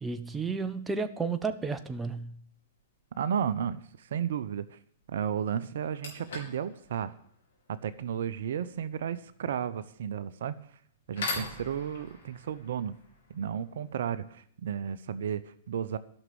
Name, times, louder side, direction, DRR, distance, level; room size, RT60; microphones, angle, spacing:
voice 1, 0.0-2.4, right 4 dB, 10° right, 9 dB, 1.0 m, -32 dB
sound 1, 2.7-3.0 5.0-5.1 5.6-14.3, left 3 dB, 70° left, 4.8 m, -43 dB
voice 2, 3.2-4.8 5.1-7.1 7.7-10.5 11.1-13.0 13.3-16.0, right 8 dB, 65° right, 13 dB, 0.7 m, -33 dB
12.0 x 6.3 x 9.6 m, 0.63 s
hypercardioid pair, 115°, 0 cm